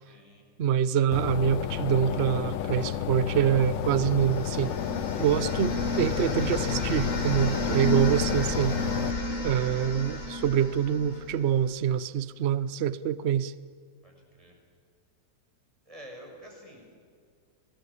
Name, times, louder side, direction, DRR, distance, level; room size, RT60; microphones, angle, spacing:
voice 1, 0.0-0.5 14.0-14.6 15.8-16.9, equal, 15° right, 1 dB, 6.3 m, -49 dB
voice 2, 0.6-4.7 5.2-8.8 9.4-13.5, right 9 dB, 50° right, 17 dB, 0.8 m, -25 dB
sound 1, 1.1-9.1, left 10 dB, 85° left, 1.6 m, -31 dB
sound 2, 3.7-11.7, left 2 dB, 45° left, 3.0 m, -32 dB
28.0 x 20.0 x 8.5 m, 2.1 s
omnidirectional pair, 1.9 m